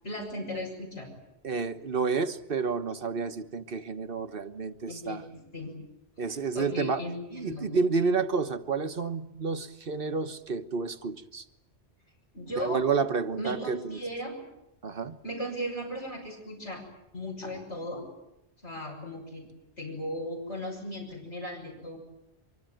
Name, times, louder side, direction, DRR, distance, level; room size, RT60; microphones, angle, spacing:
voice 1, 0.0-1.1 4.9-5.7 6.2-7.7 12.3-12.8 13.4-14.4 15.2-16.8 17.1-18.0 18.6-19.4 19.8-22.0, equal, 85° left, -1 dB, 6.8 m, -37 dB
voice 2, 1.4-5.2 6.2-7.0 7.3-11.4 12.6-14.0 14.8-15.2, right 4 dB, 55° right, 9 dB, 1.4 m, -30 dB
25.0 x 24.0 x 9.2 m, 0.87 s
omnidirectional pair, 1.1 m